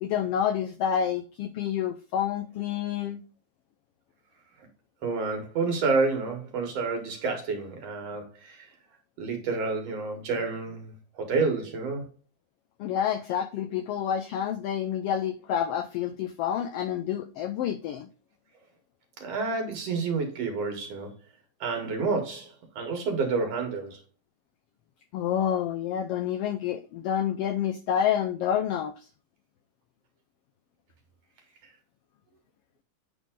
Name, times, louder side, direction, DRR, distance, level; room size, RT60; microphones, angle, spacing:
voice 1, 0.0-3.2 12.8-18.1 25.1-29.1, left 9 dB, 90° left, 1.3 m, -28 dB
voice 2, 5.0-8.7 9.2-12.0 19.2-21.1 21.6-24.0, right 4 dB, 60° right, 2.6 m, -29 dB
8.9 x 3.9 x 3.7 m
omnidirectional pair, 3.3 m